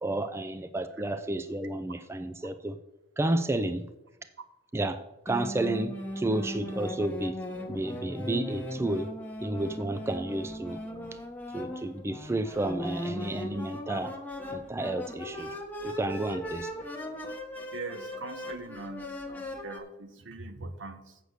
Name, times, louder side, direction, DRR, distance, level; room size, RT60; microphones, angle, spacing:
voice 1, 0.0-2.8 3.2-3.8 4.7-7.4 7.7-9.1 9.4-10.8 11.5-14.2 14.5-15.5 15.8-16.7, right 1 dB, 15° right, 11 dB, 0.4 m, -31 dB
sound 1, 5.3-19.8, left 1 dB, 10° left, 1.1 m, -38 dB
voice 2, 17.7-21.2, right 3 dB, 70° right, 9 dB, 1.0 m, -42 dB
8.0 x 6.7 x 6.4 m, 0.92 s
head